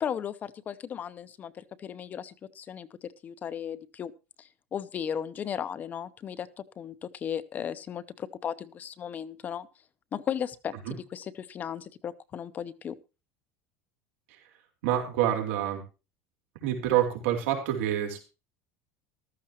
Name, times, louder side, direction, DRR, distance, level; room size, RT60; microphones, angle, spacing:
voice 1, 0.0-4.1 4.4-9.7 10.1-12.9, left 8 dB, 25° left, 13 dB, 0.7 m, -36 dB
voice 2, 14.8-15.8 16.6-18.3, right 11 dB, 85° right, 3 dB, 4.0 m, -27 dB
14.5 x 13.0 x 2.9 m, 0.30 s
cardioid pair, 165°, 7 cm